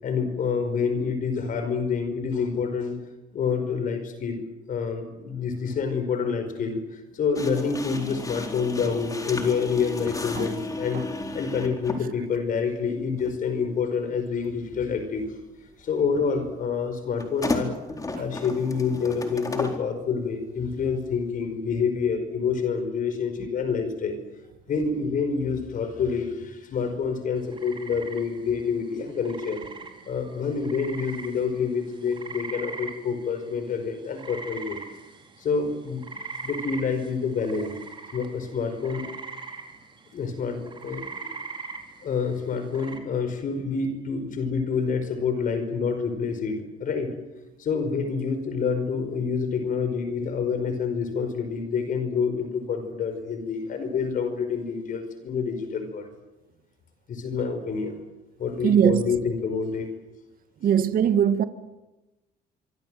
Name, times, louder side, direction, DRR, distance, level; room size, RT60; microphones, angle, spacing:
voice 1, 0.0-3.0 3.3-4.4 4.7-11.0 11.3-15.3 15.8-17.7 18.2-24.2 24.7-29.6 30.0-34.8 35.4-36.0 36.4-37.7 38.1-39.0 40.1-41.3 42.0-47.1 47.6-56.1 57.1-58.0 58.4-59.9, left 5 dB, 55° left, 5.1 m, -27 dB
sound 1, 7.4-12.1 13.2-13.4 17.2-19.8, left 2 dB, 20° left, 4.2 m, -33 dB
sound 2, 27.4-43.0, right 4 dB, 30° right, 4.3 m, -41 dB
voice 2, 58.6-59.0 60.6-61.4, right 9 dB, 60° right, 1.9 m, -20 dB
26.0 x 24.5 x 7.8 m
cardioid pair, 110°, 17 cm